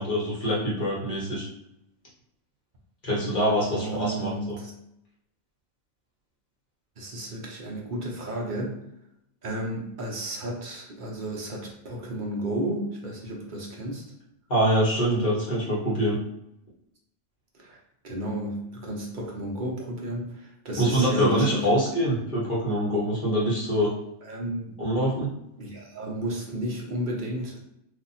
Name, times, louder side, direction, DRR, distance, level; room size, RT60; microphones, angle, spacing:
voice 1, 0.0-1.4 3.0-4.6 14.5-16.2 20.8-23.9 24.8-25.3, equal, 45° left, -6 dB, 1.2 m, -24 dB
voice 2, 3.7-4.7 7.0-8.8 9.4-14.0 17.5-17.8 18.0-21.7 24.2-24.8 25.6-27.6, right 1 dB, 45° right, -2 dB, 0.8 m, -33 dB
2.7 x 2.4 x 4.0 m, 0.81 s
omnidirectional pair, 1.3 m